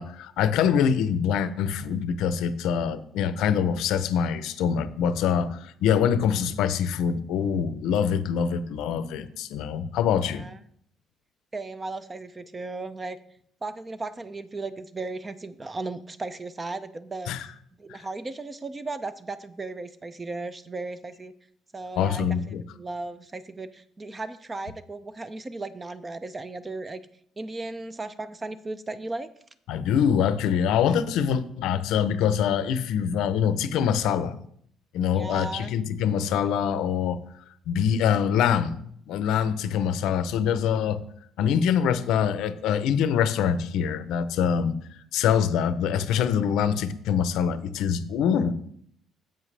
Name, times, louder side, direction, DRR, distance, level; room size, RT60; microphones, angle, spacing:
voice 1, 0.0-10.4 17.3-17.5 17.9-18.0 22.0-22.6 29.7-34.4 34.9-37.2 37.7-38.8 39.1-41.0 41.4-44.7 45.1-48.5, left 8 dB, 85° left, 0.6 m, -24 dB
voice 2, 10.2-10.6 11.5-13.2 13.6-17.3 17.8-21.3 21.7-22.4 22.7-27.0 27.4-29.3 35.1-35.8, right 3 dB, 20° right, 0.5 m, -36 dB
10.0 x 7.9 x 3.3 m
cardioid pair, 145°, 0 cm